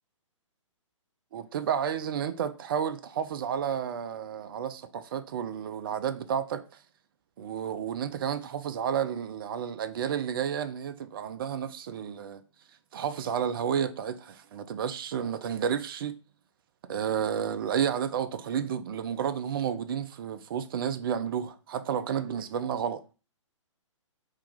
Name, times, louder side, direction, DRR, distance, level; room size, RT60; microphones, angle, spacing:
voice 1, 1.3-6.6 7.4-12.4 12.9-16.2 16.8-23.0, right 8 dB, 45° right, 0.5 m, -31 dB
3.7 x 2.9 x 4.8 m
figure-of-eight pair, 130°, 17 cm